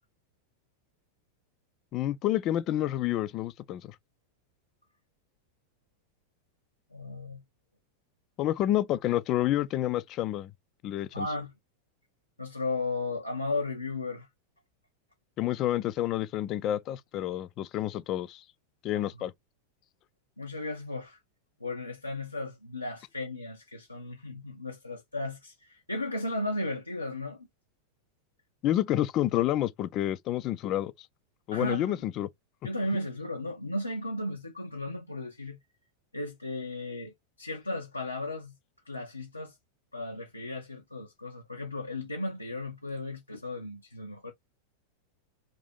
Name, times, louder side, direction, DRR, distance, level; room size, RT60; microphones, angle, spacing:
voice 1, 1.9-4.0 8.4-10.5 10.8-11.3 15.4-18.4 18.8-19.3 28.6-31.1 31.5-32.3, left 13 dB, 35° left, 0.3 m, -29 dB
voice 2, 6.9-7.4 11.1-11.5 12.4-14.3 18.9-19.0 20.4-21.2 21.6-27.5 31.5-32.0 32.6-35.6 36.1-38.5 38.9-39.6 39.9-44.3, left 2 dB, 85° left, 0.5 m, -35 dB
2.7 x 2.5 x 3.7 m
figure-of-eight pair, 90°, 0 cm